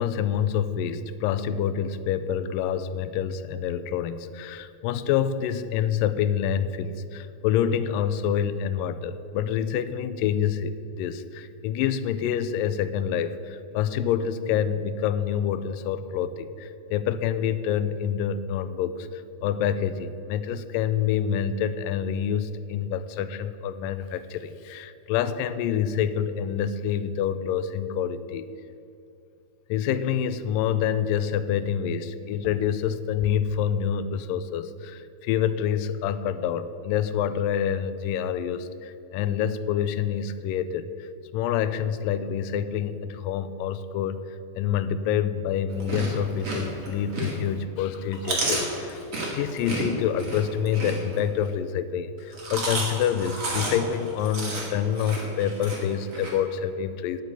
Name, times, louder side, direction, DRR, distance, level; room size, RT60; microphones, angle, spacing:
voice 1, 0.0-28.5 29.7-44.2 44.6-57.2, left 8 dB, 90° left, 13 dB, 2.2 m, -27 dB
Chewing mastication, 45.7-47.5 47.9-51.5 52.2-56.3, right 2 dB, 30° right, 2.1 m, -31 dB
8.5 x 7.7 x 8.7 m, 2.7 s
omnidirectional pair, 3.8 m